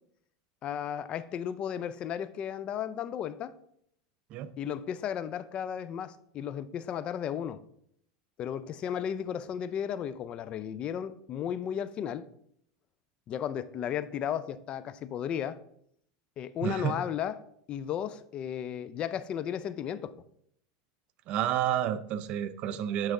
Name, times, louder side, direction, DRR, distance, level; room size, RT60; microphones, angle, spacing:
voice 1, 0.6-3.5 4.6-7.6 8.4-12.3 13.3-15.6 16.4-17.4 17.7-20.1, left 9 dB, 40° left, 0.4 m, -34 dB
voice 2, 16.6-17.0 21.3-23.1, right 10 dB, 50° right, 0.5 m, -30 dB
8.7 x 3.4 x 3.7 m
hypercardioid pair, 100°, 3 cm